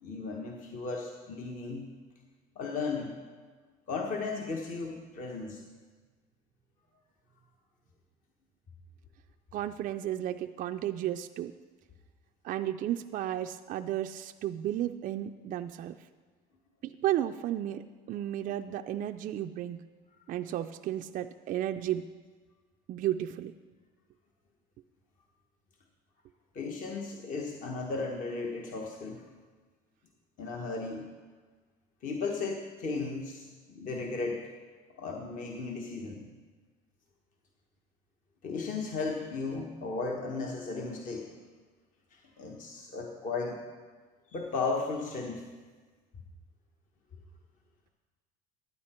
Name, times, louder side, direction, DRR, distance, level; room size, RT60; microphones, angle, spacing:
voice 1, 0.0-1.9 2.5-3.2 3.9-5.6 26.5-29.2 30.4-31.1 32.0-34.4 35.0-36.2 38.4-41.3 42.1-43.6 44.3-45.4, left 4 dB, 45° left, 0 dB, 1.2 m, -35 dB
voice 2, 9.5-11.5 12.4-16.0 16.8-19.8 20.3-22.0 22.9-23.5, right 12 dB, 45° right, 6 dB, 0.4 m, -33 dB
11.0 x 9.1 x 4.3 m, 1.4 s
cardioid pair, 115°, 19 cm